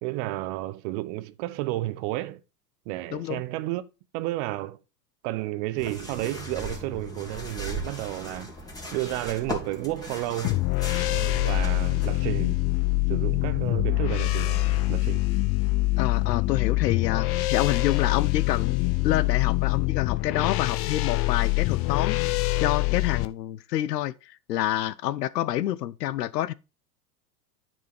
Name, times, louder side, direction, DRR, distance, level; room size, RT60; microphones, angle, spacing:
voice 1, 0.0-2.4 2.9-3.8 4.1-4.8 5.2-8.5 8.9-10.6 11.1-12.6 13.1-15.3, right 17 dB, 45° right, 0.7 m, -32 dB
voice 2, 3.1-3.4 16.0-18.8 19.0-22.2 22.6-24.1 24.5-26.5, left 13 dB, 80° left, 0.7 m, -27 dB
sound 1, 5.8-12.1, equal, 5° left, 2.4 m, -37 dB
sound 2, 10.4-23.3, left 21 dB, 30° left, 0.5 m, -25 dB
9.5 x 4.5 x 4.4 m
hypercardioid pair, 105°, 49 cm